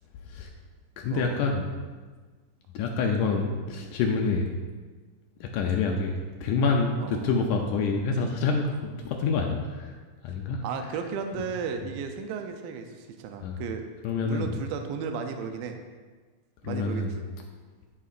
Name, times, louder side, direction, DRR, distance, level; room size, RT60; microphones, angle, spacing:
voice 1, 1.0-1.7 2.7-4.5 5.4-10.0 10.2-10.6 13.4-13.6 14.0-14.5 16.6-17.2, left 4 dB, 80° left, 2 dB, 2.0 m, -27 dB
voice 2, 10.6-13.8 14.2-15.8 16.6-17.3, right 6 dB, 85° right, 5 dB, 2.4 m, -34 dB
13.5 x 5.6 x 2.5 m, 1.4 s
omnidirectional pair, 4.0 m